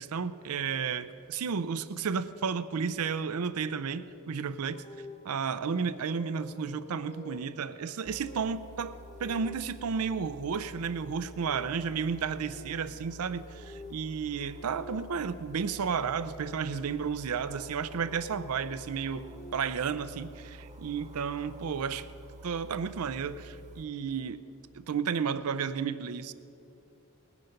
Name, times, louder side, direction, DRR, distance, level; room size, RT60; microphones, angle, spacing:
voice 1, 0.0-4.8 5.2-19.3 19.5-22.1 22.4-24.4 24.7-26.3, right 6 dB, 80° right, 14 dB, 0.5 m, -32 dB
sound 1, 4.6-16.5 17.7-19.9, left 1 dB, 30° left, 0.9 m, -51 dB
sound 2, 8.0-23.9, equal, 35° right, 1.0 m, -49 dB
20.0 x 9.8 x 5.2 m, 2.7 s
head